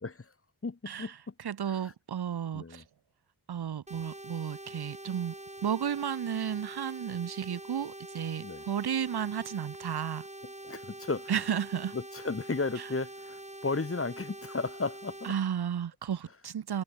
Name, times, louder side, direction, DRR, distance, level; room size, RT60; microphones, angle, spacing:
voice 1, 0.6-1.3 1.7-1.9 2.5-2.8 8.4-8.6 10.6-11.4 11.9-15.3, left 3 dB, 35° left, 1.9 m, -34 dB
voice 2, 1.4-2.8 3.5-5.3 5.6-10.2 11.3-11.9 15.2-16.8, right 8 dB, 70° right, 1.1 m, -33 dB
sound 1, 3.9-15.3, right 1 dB, 15° right, 5.4 m, -45 dB
cardioid pair, 50°, 40 cm